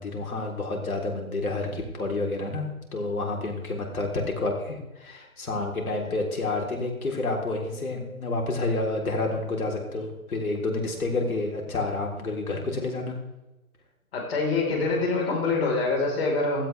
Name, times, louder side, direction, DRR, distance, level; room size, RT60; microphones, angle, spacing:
voice 1, 0.0-13.2, left 2 dB, 75° left, 1 dB, 4.0 m, -29 dB
voice 2, 14.1-16.7, left 3 dB, 45° left, 0 dB, 4.5 m, -25 dB
16.0 x 13.5 x 3.5 m, 1.0 s
hypercardioid pair, 150°, 43 cm